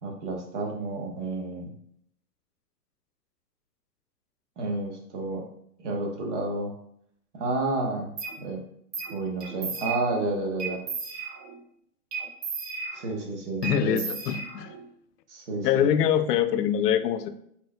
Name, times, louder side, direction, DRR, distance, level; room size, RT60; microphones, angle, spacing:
voice 1, 0.0-1.7 4.6-5.4 5.8-6.7 7.3-8.1 8.4-8.6 9.1-10.8 12.9-14.0 15.3-15.9, right 2 dB, 45° right, 1 dB, 1.0 m, -30 dB
sound 1, 8.2-8.3 8.9-9.1 9.4-10.2 10.6-11.6 12.1-13.3 13.6-14.9, right 5 dB, 75° right, 1.2 m, -35 dB
voice 2, 13.6-14.7 15.6-17.3, left 9 dB, 80° left, 11 dB, 0.6 m, -24 dB
4.3 x 4.2 x 2.3 m, 0.70 s
hypercardioid pair, 165°, 47 cm